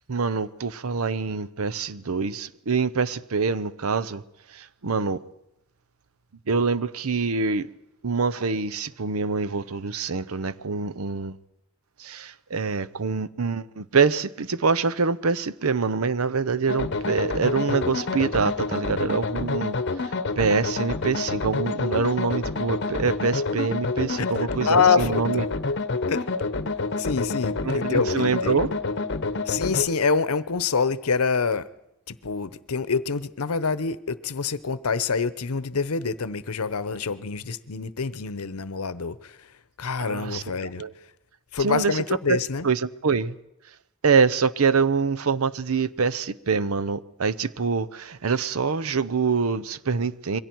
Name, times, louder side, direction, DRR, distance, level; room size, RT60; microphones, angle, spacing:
voice 1, 0.1-4.2 4.5-5.2 6.5-7.7 8.0-11.4 12.0-25.4 27.6-28.7 40.0-40.4 40.8-40.9 41.6-42.0 42.3-43.4 44.0-50.4, right 5 dB, 80° right, 0.7 m, -25 dB
sound 1, 16.7-29.9, left 3 dB, 55° left, 1.0 m, -28 dB
voice 2, 24.7-25.4 26.1-26.3 27.0-28.6 29.4-31.7 32.1-39.5 39.8-40.8 41.5-42.7, left 5 dB, 85° left, 0.8 m, -26 dB
27.0 x 22.5 x 4.6 m
head